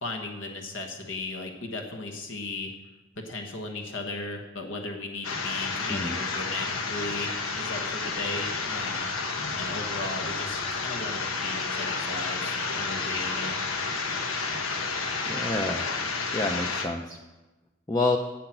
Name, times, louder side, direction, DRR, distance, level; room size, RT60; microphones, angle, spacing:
voice 1, 0.0-2.7 3.1-9.0 9.6-13.6, left 2 dB, 65° left, 3 dB, 1.3 m, -36 dB
sound 1, 5.2-16.9, left 4 dB, 90° left, 1.2 m, -31 dB
voice 2, 15.3-15.8 16.3-17.2 17.9-18.2, left 2 dB, 15° left, 3 dB, 0.5 m, -28 dB
10.0 x 7.8 x 7.6 m, 1.1 s
head